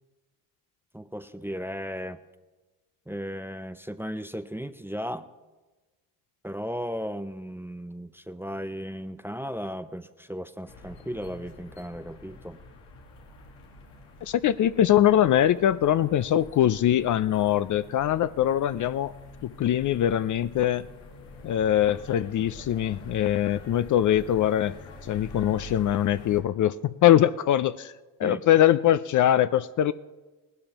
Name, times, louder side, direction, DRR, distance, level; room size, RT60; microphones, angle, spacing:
voice 1, 0.9-2.2 3.1-5.3 6.4-12.6 28.2-28.4, equal, 5° right, 11 dB, 0.5 m, -35 dB
sound 1, 10.7-26.4, left 2 dB, 85° left, 1.8 m, -46 dB
voice 2, 14.2-19.1 19.4-20.9 21.4-24.7 25.0-27.9 28.2-29.9, left 11 dB, 45° left, 14 dB, 0.4 m, -22 dB
18.5 x 12.0 x 3.0 m, 1.2 s
supercardioid pair, 70°, 43 cm